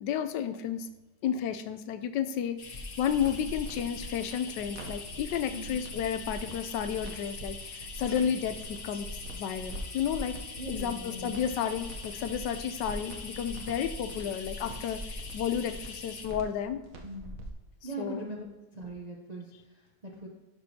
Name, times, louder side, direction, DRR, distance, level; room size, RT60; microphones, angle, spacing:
voice 1, 0.0-0.9 1.2-10.4 10.7-16.8 18.0-18.2, left 8 dB, 85° left, 11 dB, 1.2 m, -32 dB
sound 1, 2.6-16.3, left 4 dB, 45° left, 0.7 m, -43 dB
sound 2, 3.0-17.5, right 1 dB, 55° right, 1.2 m, -43 dB
voice 2, 10.6-11.3 17.0-17.4 17.8-20.3, right 1 dB, 40° right, -1 dB, 0.6 m, -41 dB
11.5 x 6.0 x 2.8 m, 1.1 s
omnidirectional pair, 1.8 m